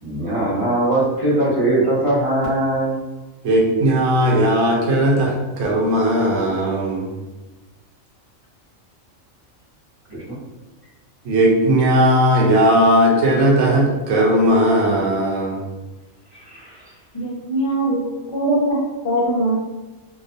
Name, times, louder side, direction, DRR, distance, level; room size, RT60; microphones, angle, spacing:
voice 1, 0.0-2.9 10.1-10.4 16.5-16.8, right 1 dB, 30° right, -9 dB, 0.7 m, -20 dB
voice 2, 3.4-7.1 11.2-15.6, right 1 dB, 80° right, -2 dB, 1.0 m, -17 dB
voice 3, 17.1-18.8 19.0-19.5, right 1 dB, 60° left, -3 dB, 0.3 m, -21 dB
2.3 x 2.3 x 2.6 m, 1.2 s
omnidirectional pair, 1.4 m